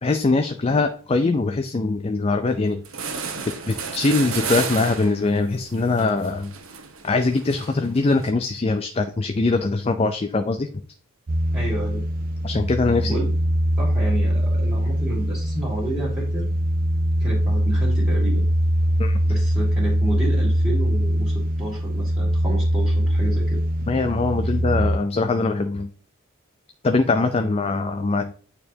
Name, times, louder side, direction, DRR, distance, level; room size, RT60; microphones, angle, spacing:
voice 1, 0.0-2.8 3.7-6.5 7.0-10.7 12.4-13.2 19.0-19.2 23.9-25.9 26.8-28.3, left 3 dB, 30° left, 7 dB, 0.4 m, -22 dB
sound 1, 2.5-2.6 2.8-8.3, right 5 dB, 80° right, 1.0 m, -32 dB
sound 2, 11.3-25.0, equal, 45° right, 0.5 m, -22 dB
voice 2, 11.5-12.0 13.0-13.3 13.8-16.5 17.2-18.5 19.3-23.6, right 2 dB, 10° right, -8 dB, 2.1 m, -31 dB
8.8 x 4.4 x 2.8 m, 0.42 s
head